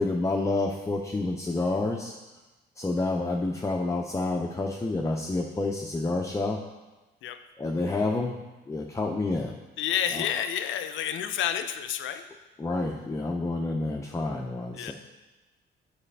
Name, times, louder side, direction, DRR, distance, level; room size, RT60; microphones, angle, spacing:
voice 1, 0.0-2.2 2.8-6.6 7.6-8.4 8.7-9.6 10.1-10.3 12.6-14.9, left 2 dB, 15° left, 2 dB, 0.5 m, -28 dB
voice 2, 9.8-12.2 14.7-14.9, left 9 dB, 75° left, 9 dB, 0.5 m, -29 dB
7.3 x 4.9 x 3.3 m, 1.1 s
cardioid pair, 90°, 20 cm